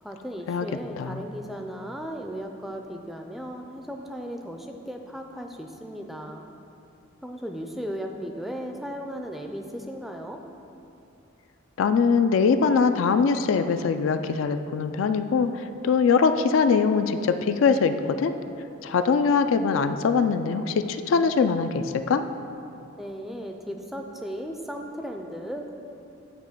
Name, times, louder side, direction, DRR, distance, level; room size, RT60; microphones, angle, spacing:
voice 1, 0.0-6.5 7.2-10.4 23.0-25.7, equal, ahead, 3 dB, 0.4 m, -36 dB
voice 2, 11.8-18.3 18.8-22.2, left 5 dB, 80° left, 9 dB, 0.3 m, -22 dB
8.9 x 3.0 x 6.5 m, 2.7 s
head